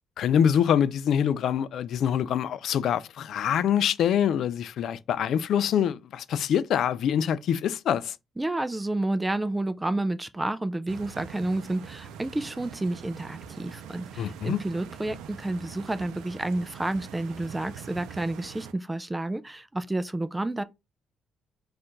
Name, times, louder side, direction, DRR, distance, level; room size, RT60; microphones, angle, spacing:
voice 1, 0.2-8.1 14.2-14.6, left 9 dB, 70° left, 0.4 m, -25 dB
voice 2, 8.4-20.6, right 2 dB, 15° right, 0.4 m, -30 dB
Stream, 10.9-18.7, right 8 dB, 90° right, 0.5 m, -43 dB
4.4 x 2.5 x 3.8 m
cardioid pair, 90°, 0 cm